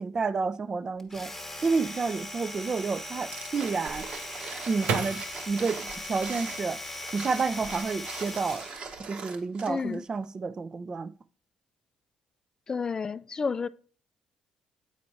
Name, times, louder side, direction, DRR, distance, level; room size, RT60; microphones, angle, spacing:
voice 1, 0.0-1.3 1.6-4.1 4.7-6.8 7.1-8.7 9.1-11.1, right 4 dB, 30° right, 0.5 m, -30 dB
Domestic sounds home sounds, 1.0-8.8, left 1 dB, 10° left, 1.0 m, -39 dB
sound 1, 3.3-9.9 10.2-10.3, right 4 dB, 50° right, 1.0 m, -42 dB
sound 2, 3.9-7.0 7.5-8.2 8.5-9.0, right 5 dB, 75° right, 0.9 m, -35 dB
voice 2, 9.7-10.0 12.7-13.7, left 5 dB, 30° left, 0.3 m, -30 dB
8.6 x 4.2 x 4.6 m
cardioid pair, 100°, 2 cm